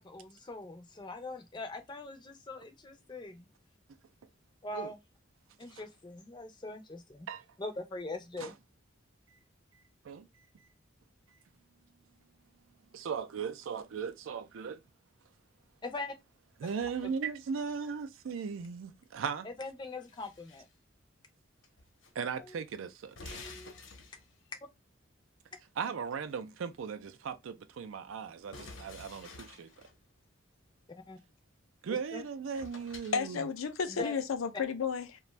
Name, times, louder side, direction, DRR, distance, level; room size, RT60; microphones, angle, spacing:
voice 1, 0.0-3.5 4.6-5.0 5.6-7.3 7.6-8.6 15.8-16.1 19.4-20.6 22.4-22.5 23.2-23.8 31.1-31.2 31.9-32.2 33.9-34.1, left 2 dB, 20° left, 0.4 m, -42 dB
voice 2, 12.9-14.8 16.6-19.5 22.1-23.4 25.8-29.7 31.8-33.5, right 6 dB, 80° right, 0.4 m, -37 dB
sound 1, 16.6-17.3 19.7-20.7 21.6-22.1 22.4-22.5 23.1-24.5 28.5-30.0 32.1-32.2 32.5-33.2, left 3 dB, 70° left, 0.8 m, -50 dB
voice 3, 33.1-35.2, left 6 dB, 85° left, 0.5 m, -32 dB
2.5 x 2.2 x 3.1 m
head